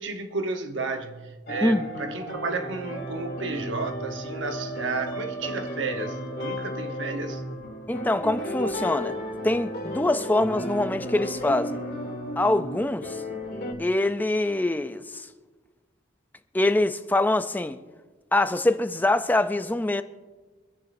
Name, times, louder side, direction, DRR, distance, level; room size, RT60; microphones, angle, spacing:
voice 1, 0.0-7.4, right 3 dB, 85° right, 1.0 m, -32 dB
sound 1, 1.5-13.7, equal, 55° left, 2.0 m, -34 dB
voice 2, 7.9-9.2 9.4-11.8 12.4-13.2 13.8-15.3 16.5-17.8 18.3-20.0, left 2 dB, 10° left, 0.4 m, -24 dB
25.5 x 10.5 x 2.6 m
head